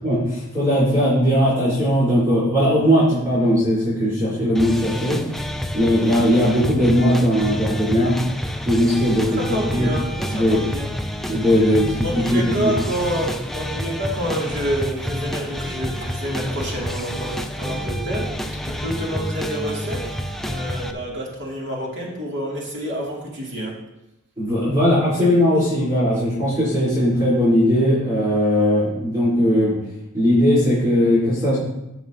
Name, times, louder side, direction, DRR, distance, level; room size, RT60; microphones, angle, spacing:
voice 1, 0.0-5.2 5.7-8.2 8.6-9.4 9.7-9.9 10.3-10.7 11.3-12.7 24.4-29.7 30.1-31.6, equal, 15° right, -10 dB, 3.4 m, -18 dB
sound 1, 4.5-20.9, equal, ahead, 0.4 m, -29 dB
voice 2, 9.2-10.9 12.0-20.1 20.5-23.8, equal, 55° right, -4 dB, 2.3 m, -28 dB
14.5 x 6.0 x 2.7 m, 0.89 s
head